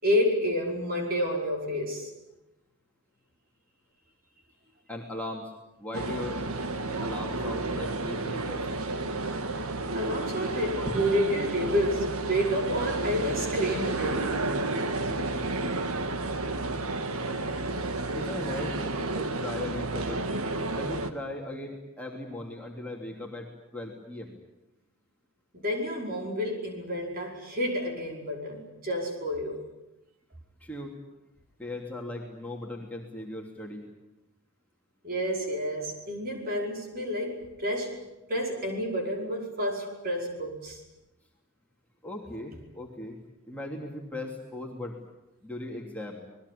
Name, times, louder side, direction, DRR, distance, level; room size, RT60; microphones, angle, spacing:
voice 1, 0.0-2.1 9.9-14.4 25.5-29.6 35.0-38.0 38.3-40.8, equal, 40° right, 5.2 m, -29 dB
voice 2, 4.9-5.5 5.8-6.4 7.0-8.6 18.1-18.8 19.1-20.3 20.7-24.3 30.6-30.9 31.6-33.8 42.0-43.2 43.5-45.0 45.4-46.2, left 1 dB, 5° left, 3.0 m, -38 dB
sound 1, 5.9-21.1, right 2 dB, 80° right, 1.8 m, -31 dB
27.5 x 20.5 x 8.6 m
head